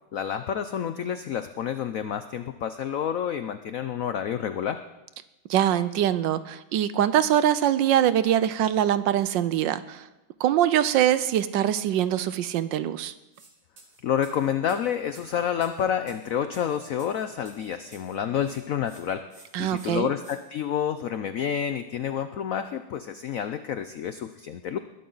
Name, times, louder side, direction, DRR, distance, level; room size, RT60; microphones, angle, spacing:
voice 1, 0.1-4.8 14.0-19.3 19.6-24.8, left 9 dB, 80° left, 10 dB, 0.7 m, -29 dB
voice 2, 5.5-10.1 10.4-13.1 19.5-20.1, right 11 dB, 75° right, 14 dB, 1.3 m, -23 dB
sound 1, 13.3-13.5 13.8-18.2 18.4-19.0 19.3-19.5 19.8-20.4, right 4 dB, 55° right, 2.8 m, -53 dB
21.5 x 12.0 x 4.0 m, 1.0 s
omnidirectional pair, 2.2 m